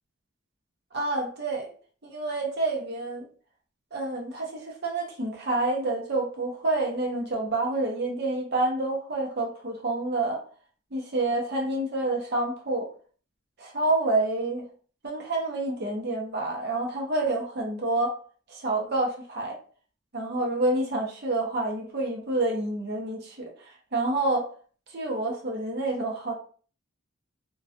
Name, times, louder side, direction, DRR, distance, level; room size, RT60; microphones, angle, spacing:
voice 1, 0.9-1.7 2.0-3.3 3.9-10.4 10.9-12.9 13.6-14.7 15.0-18.2 18.5-19.6 20.1-23.5 23.9-24.5 24.9-26.3, right 2 dB, 50° right, 0.6 m, -28 dB
2.3 x 2.2 x 2.5 m
head